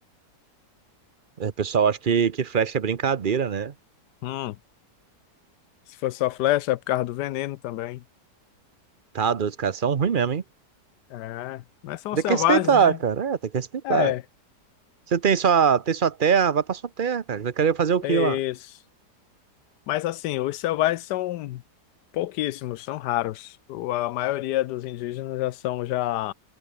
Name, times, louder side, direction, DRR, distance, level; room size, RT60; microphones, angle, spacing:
voice 1, 1.4-3.7 9.1-10.4 12.1-14.1 15.1-18.4, right 7 dB, 40° right, 0.8 m, -23 dB
voice 2, 4.2-4.5 6.0-8.0 11.1-12.9 13.8-14.2 18.0-18.5 19.9-21.6 22.1-26.3, left 15 dB, 85° left, 1.2 m, -27 dB
omnidirectional pair, 1.7 m